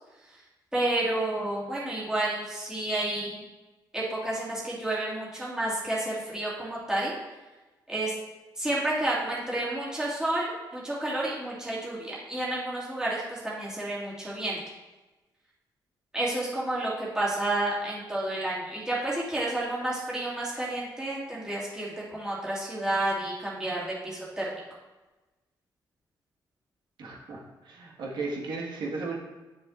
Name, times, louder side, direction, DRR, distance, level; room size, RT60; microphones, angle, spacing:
voice 1, 0.7-3.4 3.9-7.1 7.9-8.1 8.6-14.6 16.1-24.6, right 1 dB, 10° right, -8 dB, 2.2 m, -30 dB
voice 2, 27.0-29.2, right 3 dB, 75° right, -2 dB, 1.5 m, -35 dB
10.0 x 6.3 x 2.5 m, 1.2 s
cardioid pair, 125°, 8 cm